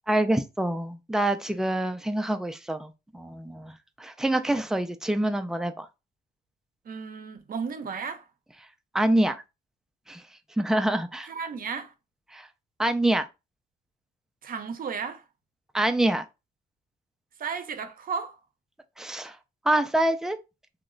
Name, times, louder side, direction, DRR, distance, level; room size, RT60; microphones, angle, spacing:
voice 1, 0.1-5.9 8.9-9.4 10.1-10.2 10.5-11.3 12.3-12.5 12.8-13.2 15.7-16.3 19.0-19.4 19.6-20.4, right 1 dB, 5° right, 0.4 m, -26 dB
voice 2, 6.9-8.2 11.3-11.9 14.4-15.2 17.4-18.4, right 5 dB, 45° right, 0.6 m, -34 dB
2.9 x 2.1 x 3.7 m
cardioid pair, 90°, 20 cm